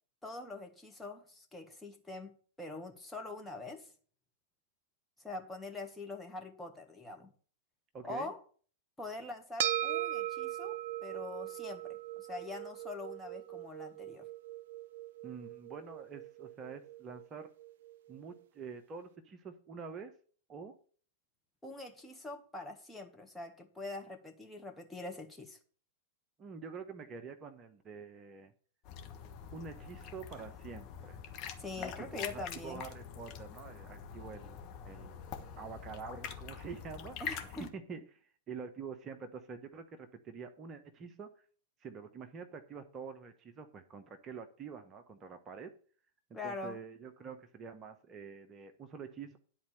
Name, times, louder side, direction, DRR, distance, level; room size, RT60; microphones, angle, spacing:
voice 1, 0.2-3.9 5.2-7.3 8.0-8.4 9.0-14.3 21.6-25.6 31.6-32.8 37.2-37.7 46.3-46.8, left 2 dB, 5° left, 1.5 m, -44 dB
voice 2, 7.9-8.3 15.2-17.5 18.1-20.2 20.5-20.8 26.4-28.5 29.5-31.2 31.7-35.2 35.6-37.3 37.7-41.4 41.8-45.7 46.3-49.4, right 5 dB, 25° right, 1.0 m, -47 dB
sound 1, 9.6-18.2, right 12 dB, 60° right, 0.4 m, -40 dB
sound 2, 28.8-37.7, left 7 dB, 40° left, 1.4 m, -45 dB
10.5 x 4.3 x 7.5 m
figure-of-eight pair, 100°, 0 cm